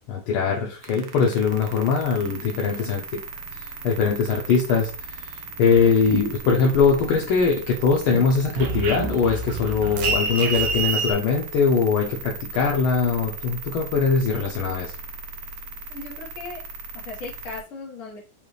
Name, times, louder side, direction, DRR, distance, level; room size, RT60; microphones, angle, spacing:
voice 1, 0.0-3.0 3.5-14.9, left 5 dB, 80° left, -1 dB, 1.6 m, -22 dB
sound 1, 0.8-17.6, right 4 dB, 90° right, 1.6 m, -38 dB
voice 2, 2.4-2.9 15.9-16.6 16.9-18.2, left 3 dB, 45° left, -2 dB, 1.4 m, -38 dB
sound 2, 6.0-7.4 7.7-11.1, right 4 dB, 75° right, 1.4 m, -27 dB
5.3 x 2.4 x 3.1 m, 0.34 s
omnidirectional pair, 2.3 m